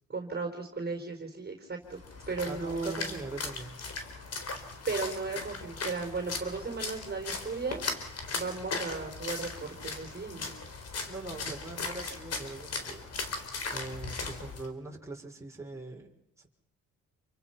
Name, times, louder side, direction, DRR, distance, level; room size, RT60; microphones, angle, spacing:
voice 1, 0.1-2.0 2.3-3.1 4.9-7.9 8.3-10.5, right 4 dB, 30° right, 3 dB, 4.3 m, -35 dB
Splash splatter, 1.9-14.7, left 4 dB, 55° left, 4.3 m, -38 dB
voice 2, 2.5-3.8 11.1-13.1 13.7-16.5, right 2 dB, 10° right, -1 dB, 5.4 m, -42 dB
28.5 x 24.0 x 5.9 m, 0.78 s
cardioid pair, 90°, 30 cm